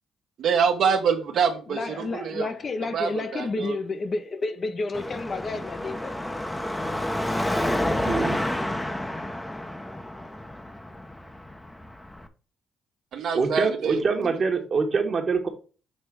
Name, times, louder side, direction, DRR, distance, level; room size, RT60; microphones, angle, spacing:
voice 1, 0.4-2.5 2.9-3.8 13.1-14.0, right 6 dB, 70° right, 1.2 m, -25 dB
voice 2, 1.7-6.1, left 3 dB, 40° left, 0.7 m, -30 dB
Car passing by / Traffic noise roadway noise / Engine, 4.9-12.3, left 1 dB, 10° left, 0.7 m, -30 dB
voice 3, 8.1-8.4 13.3-15.5, right 4 dB, 45° right, 1.3 m, -24 dB
6.5 x 3.3 x 4.7 m
cardioid pair, 90°, 0 cm